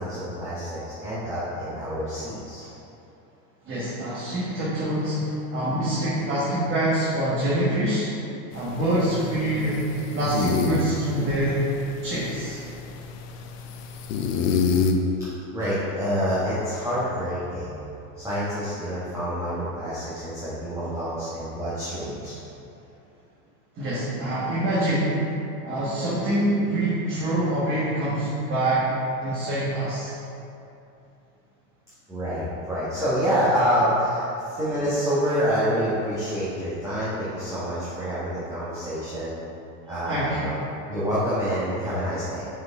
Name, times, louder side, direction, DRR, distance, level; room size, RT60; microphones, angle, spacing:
voice 1, 0.0-2.7 15.2-17.8 18.2-22.3 32.1-39.3 39.9-40.6 40.9-42.5, equal, 5° right, -12 dB, 1.4 m, -27 dB
voice 2, 3.6-8.0 8.5-9.8 10.1-11.7 12.0-12.6 23.7-25.1 25.6-28.9 29.2-30.1 40.1-40.5, right 1 dB, 25° right, -8 dB, 1.4 m, -25 dB
sound 1, 8.5-14.9, left 5 dB, 75° left, 0.7 m, -28 dB
6.2 x 4.8 x 3.6 m, 2.7 s
hypercardioid pair, 115°, 48 cm